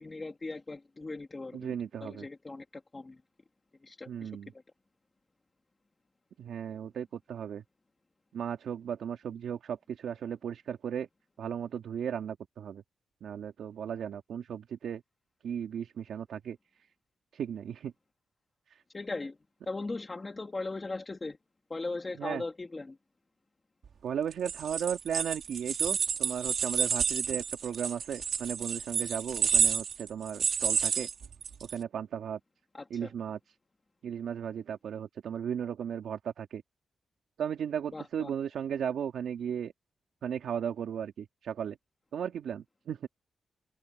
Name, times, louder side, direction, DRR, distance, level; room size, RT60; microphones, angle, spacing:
voice 1, 0.0-3.2 3.8-4.3 18.9-19.4 19.7-21.4 21.7-23.0 32.7-33.1 37.9-38.3, left 3 dB, 20° left, 1.7 m, -39 dB
voice 2, 1.5-2.3 4.1-4.5 6.4-7.6 8.3-11.1 11.4-12.8 13.2-15.0 15.4-16.6 17.3-17.9 18.7-18.8 22.2-22.4 24.0-31.1 31.7-32.4 32.9-33.4 34.0-36.6 37.4-39.7 40.2-41.8 42.1-43.1, right 8 dB, 90° right, 2.4 m, -36 dB
sound 1, 24.3-31.8, right 7 dB, 60° right, 2.3 m, -30 dB
wide cardioid pair, 155°, 0 cm